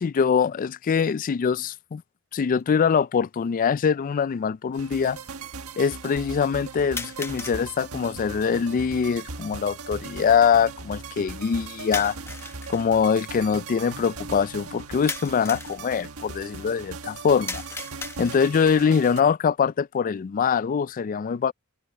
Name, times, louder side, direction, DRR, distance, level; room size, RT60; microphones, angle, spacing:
voice 1, 0.0-2.0 2.3-5.2 5.8-12.2 12.7-17.6 18.2-21.5, left 6 dB, 40° left, 0.3 m, -23 dB
sound 1, 2.6-2.7 3.7-3.8 7.0-7.6 11.9-12.9 15.1-15.8 17.5-18.6, left 3 dB, 10° left, 0.9 m, -35 dB
sound 2, 4.7-19.2, right 4 dB, 75° right, 1.6 m, -39 dB
head